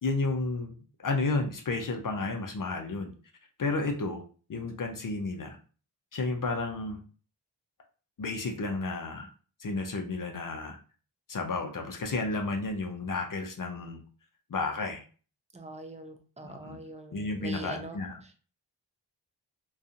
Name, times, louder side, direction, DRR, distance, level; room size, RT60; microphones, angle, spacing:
voice 1, 0.0-0.7 1.0-3.1 3.6-4.2 4.5-5.6 6.1-7.0 8.2-9.3 9.6-10.8 11.3-14.0 14.5-15.0 16.4-16.8 17.1-18.2, left 3 dB, 45° left, 4 dB, 0.5 m, -32 dB
voice 2, 15.5-18.4, right 2 dB, 15° right, 5 dB, 0.4 m, -43 dB
2.6 x 2.3 x 2.5 m, 0.39 s
wide cardioid pair, 75°, 45 cm